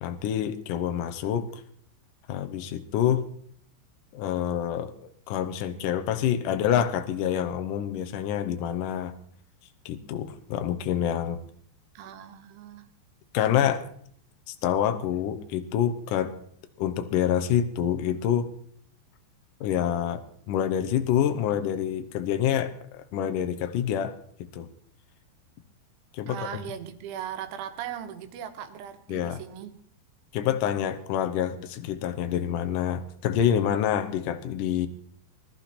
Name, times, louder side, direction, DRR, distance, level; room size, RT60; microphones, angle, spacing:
voice 1, 0.0-1.6 2.3-3.3 4.1-9.1 9.9-11.4 13.3-13.8 14.5-16.3 16.8-18.5 19.6-20.2 20.5-24.7 26.1-26.6 29.1-29.4 30.3-34.9, left 9 dB, 85° left, 8 dB, 1.8 m, -27 dB
voice 2, 12.0-12.9 26.3-29.8, right 9 dB, 85° right, 7 dB, 3.7 m, -38 dB
21.0 x 12.5 x 4.2 m, 0.62 s
omnidirectional pair, 5.3 m